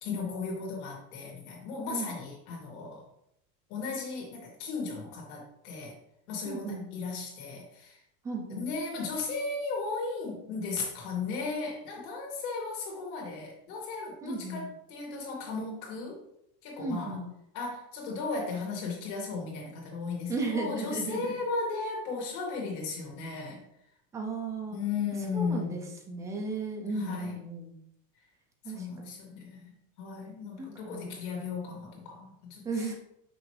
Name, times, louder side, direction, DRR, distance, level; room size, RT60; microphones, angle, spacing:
voice 1, 0.0-3.0 3.7-6.0 6.3-8.0 8.5-16.2 16.6-17.2 17.5-23.6 24.7-25.9 26.9-27.4 28.7-32.9, left 4 dB, 70° left, -1 dB, 2.4 m, -36 dB
voice 2, 6.4-6.9 8.2-8.7 14.2-14.6 16.8-17.3 20.3-21.3 24.1-24.8 25.3-27.8 28.6-29.1 30.6-31.1 32.6-32.9, right 3 dB, 5° right, 1 dB, 0.4 m, -35 dB
6.0 x 5.2 x 3.3 m, 0.76 s
supercardioid pair, 160°, 46 cm